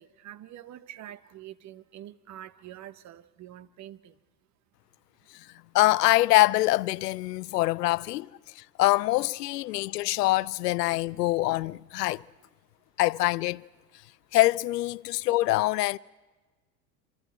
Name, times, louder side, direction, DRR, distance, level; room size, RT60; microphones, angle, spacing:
voice 1, 0.0-4.1, right 12 dB, 35° right, 1.0 m, -46 dB
voice 2, 5.7-8.3 8.6-12.2 13.0-13.6 14.3-16.0, left 18 dB, 75° left, 0.6 m, -24 dB
28.0 x 25.5 x 4.5 m
hypercardioid pair, 80°, 49 cm